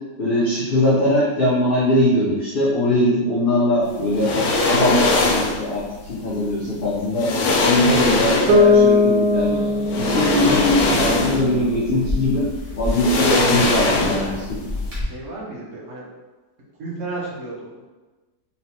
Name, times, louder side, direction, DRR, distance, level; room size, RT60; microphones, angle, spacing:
voice 1, 0.2-4.3 4.6-7.3 7.6-9.6 10.0-12.5 12.8-14.6, left 1 dB, 60° left, -8 dB, 0.6 m, -21 dB
sound 1, 4.1-5.7 6.7-6.8 7.2-8.8 9.9-11.6 11.9-12.0 12.8-14.5 14.7-14.9, left 3 dB, 85° left, 1.3 m, -21 dB
Bass guitar, 8.5-12.3, left 3 dB, 75° right, 1.3 m, -19 dB
Growling / Hiss, 9.3-15.0, equal, 30° right, 0.7 m, -30 dB
voice 2, 13.9-14.5 15.0-16.1 16.8-17.8, right 2 dB, 55° right, -4 dB, 1.2 m, -33 dB
3.2 x 3.2 x 2.8 m, 1.2 s
omnidirectional pair, 1.8 m